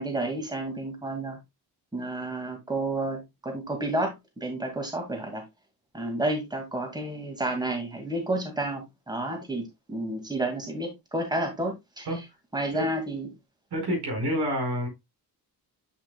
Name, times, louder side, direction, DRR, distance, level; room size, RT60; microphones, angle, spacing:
voice 1, 0.0-1.4 1.9-5.4 5.9-12.1 12.5-13.3, right 1 dB, 10° right, 2.1 m, -31 dB
voice 2, 13.7-14.9, equal, 80° right, 4.8 m, -28 dB
8.2 x 6.6 x 2.3 m
wide cardioid pair, 155°, 39 cm